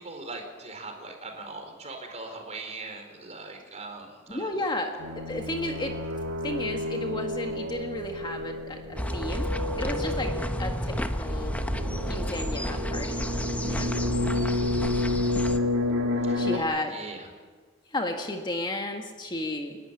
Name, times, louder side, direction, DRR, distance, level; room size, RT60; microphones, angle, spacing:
voice 1, 0.0-4.6 16.2-17.3, right 3 dB, 35° right, 4 dB, 4.4 m, -40 dB
voice 2, 4.3-6.0 6.4-9.5 9.8-10.3 10.6-11.5 12.1-13.2 13.6-13.9 16.3-16.9 17.9-19.8, left 1 dB, 25° left, 3 dB, 1.7 m, -33 dB
sound 1, 5.0-16.6, left 2 dB, 85° right, 2.0 m, -30 dB
sound 2, 9.0-15.6, equal, 5° left, 1.0 m, -31 dB
30.0 x 12.0 x 9.8 m, 1.5 s
head